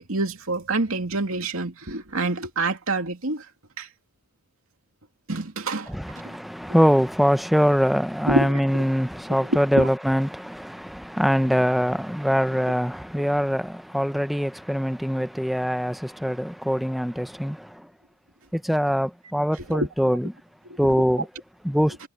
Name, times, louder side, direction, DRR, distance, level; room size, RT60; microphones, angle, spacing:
voice 1, 0.0-3.5 3.8-3.9 5.3-5.9 6.2-6.4 8.3-8.8 9.5-9.9 19.7-19.9 20.7-20.9, right 2 dB, 80° right, 2.6 m, -27 dB
voice 2, 5.9-17.9 18.5-20.3 20.8-21.3 21.6-22.0, equal, ahead, 0.8 m, -23 dB
head